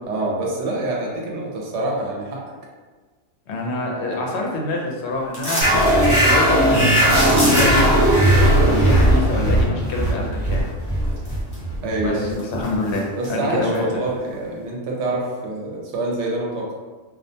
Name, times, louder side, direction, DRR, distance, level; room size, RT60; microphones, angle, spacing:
voice 1, 0.1-2.4 11.8-12.4 13.1-16.7, right 2 dB, 70° right, -2 dB, 0.9 m, -26 dB
voice 2, 3.5-8.0 8.3-10.6 12.0-13.8, left 2 dB, 70° left, -1 dB, 0.8 m, -26 dB
sound 1, 5.3-5.9 7.0-8.0 10.5-10.6 11.1-11.8 12.2-13.3 13.7-13.8, equal, 25° left, 0.6 m, -26 dB
sound 2, 5.6-12.7, right 1 dB, 20° right, 0.8 m, -17 dB
2.4 x 2.1 x 2.6 m, 1.3 s
omnidirectional pair, 1.2 m